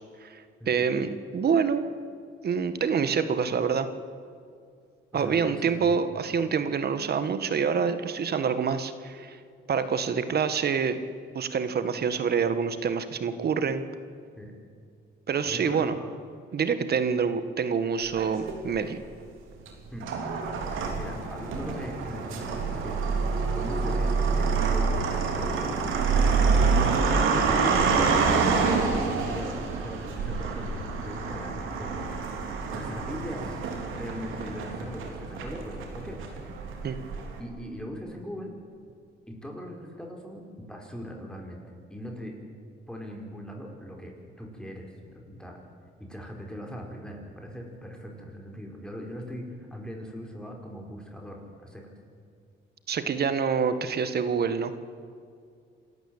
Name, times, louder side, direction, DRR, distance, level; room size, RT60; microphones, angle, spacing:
voice 1, 0.2-1.8 2.4-3.9 5.1-9.4 9.7-11.0 11.3-13.8 15.3-15.9 16.5-19.0 36.8-37.0 52.9-54.7, right 6 dB, 55° right, 11 dB, 1.7 m, -26 dB
voice 2, 5.1-6.1 14.4-14.5 15.4-16.1 19.9-20.1 20.9-23.0 23.5-27.2 27.7-28.1 28.4-32.4 32.7-33.6 33.9-36.5 37.4-38.5 39.3-41.6 41.9-42.3 42.9-45.6 46.0-51.8, equal, 5° left, 1 dB, 4.6 m, -40 dB
sound 1, 18.1-18.9 19.6-37.4, right 4 dB, 85° right, 3.4 m, -27 dB
27.0 x 13.5 x 8.9 m, 2.3 s
cardioid pair, 90°, 20 cm